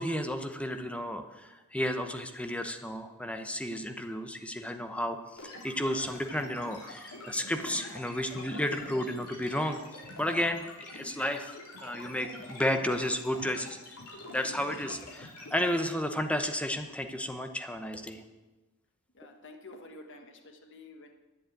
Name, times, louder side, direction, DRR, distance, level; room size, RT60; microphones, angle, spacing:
voice 1, 0.0-9.8 10.2-11.6 11.8-14.0 14.3-18.2, left 1 dB, 5° left, 6 dB, 0.9 m, -32 dB
sound 1, 5.4-15.8, left 2 dB, 90° left, 3.5 m, -45 dB
voice 2, 19.1-21.1, left 2 dB, 55° left, 4 dB, 1.3 m, -49 dB
11.5 x 7.4 x 9.2 m, 1.1 s
head